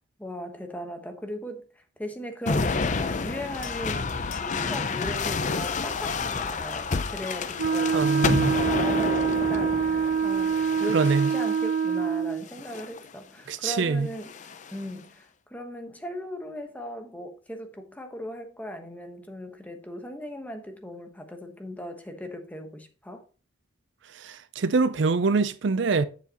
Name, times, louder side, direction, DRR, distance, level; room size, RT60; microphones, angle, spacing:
voice 1, 0.2-14.3 14.7-23.2, equal, 10° left, 1.1 m, -38 dB
sound 1, 2.5-11.8 12.5-13.0 14.1-14.8, left 4 dB, 40° left, 0.5 m, -30 dB
Wind instrument woodwind instrument, 7.6-12.4, right 6 dB, 80° right, 0.9 m, -25 dB
voice 2, 7.9-8.6 10.9-11.3 13.5-14.1 24.1-26.0, right 4 dB, 65° right, 0.4 m, -24 dB
8.0 x 7.3 x 2.9 m
head